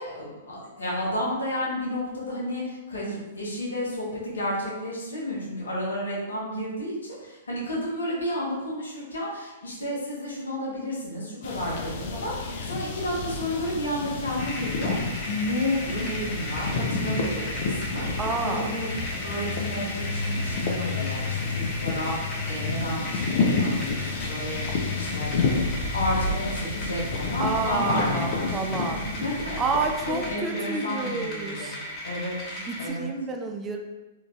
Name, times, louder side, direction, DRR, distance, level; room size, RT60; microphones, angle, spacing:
voice 1, 0.0-18.9 19.2-25.4 25.9-29.6 30.1-31.8 32.0-32.3 32.8-33.1, left 1 dB, 80° left, -5 dB, 0.9 m, -31 dB
sound 1, 11.4-30.3, left 4 dB, 55° left, 0.4 m, -30 dB
sound 2, 14.4-32.9, left 1 dB, 35° left, 0.9 m, -37 dB
voice 2, 18.2-18.7 27.4-29.0 29.6-31.8 32.6-33.8, right 4 dB, 20° right, 3 dB, 0.3 m, -29 dB
3.0 x 2.5 x 2.2 m, 1.1 s
hypercardioid pair, 110°, 0 cm